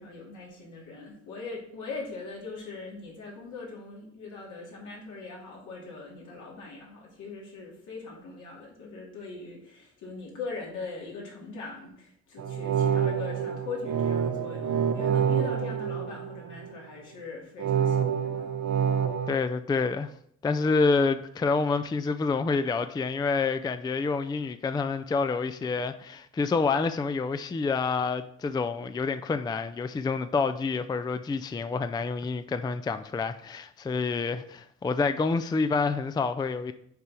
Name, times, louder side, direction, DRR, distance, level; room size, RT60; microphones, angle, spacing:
voice 1, 0.0-18.5, left 3 dB, 75° left, 2.6 m, -41 dB
sound 1, 12.4-16.7 17.6-19.3, right 8 dB, 75° right, 0.8 m, -27 dB
voice 2, 19.3-20.1 20.4-36.7, left 4 dB, 15° left, 0.3 m, -28 dB
6.9 x 4.4 x 4.8 m
cardioid pair, 90°, 30 cm